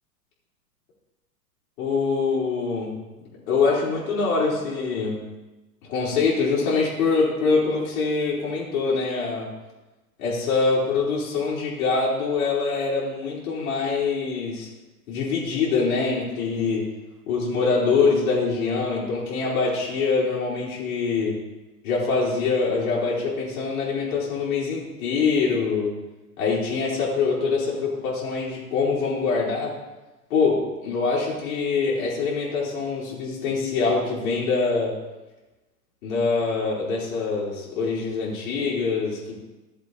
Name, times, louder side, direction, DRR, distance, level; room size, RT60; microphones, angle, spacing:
voice 1, 1.8-3.0 3.5-5.2 5.9-9.5 10.2-14.7 15.1-16.9 17.3-21.4 21.8-25.9 26.4-29.7 30.3-35.0 36.0-39.3, left 4 dB, 55° left, -6 dB, 3.8 m, -24 dB
14.5 x 7.4 x 4.1 m, 1.1 s
hypercardioid pair, 125°, 48 cm